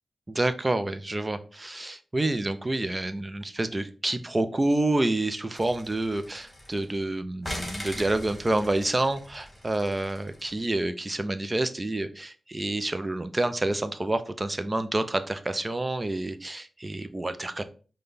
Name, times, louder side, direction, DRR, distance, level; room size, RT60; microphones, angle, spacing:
voice 1, 0.3-17.6, right 2 dB, 30° right, 10 dB, 0.5 m, -28 dB
sound 1, 5.5-7.0 7.4-10.7, left 1 dB, 15° left, 1.9 m, -41 dB
5.2 x 2.3 x 3.9 m, 0.38 s
cardioid pair, 55°, 0 cm